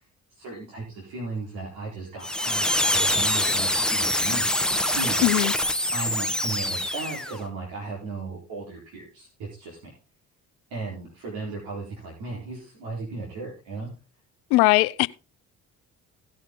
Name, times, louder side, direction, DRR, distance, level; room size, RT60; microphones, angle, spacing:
voice 1, 0.4-4.5 4.9-5.3 5.9-9.8 10.7-13.9, right 3 dB, 70° right, 4.1 m, -36 dB
sound 1, 2.2-7.4, left 1 dB, ahead, 1.2 m, -25 dB
voice 2, 5.2-5.5 14.5-15.1, left 21 dB, 75° left, 0.6 m, -19 dB
17.0 x 6.5 x 3.8 m
hypercardioid pair, 55°, 39 cm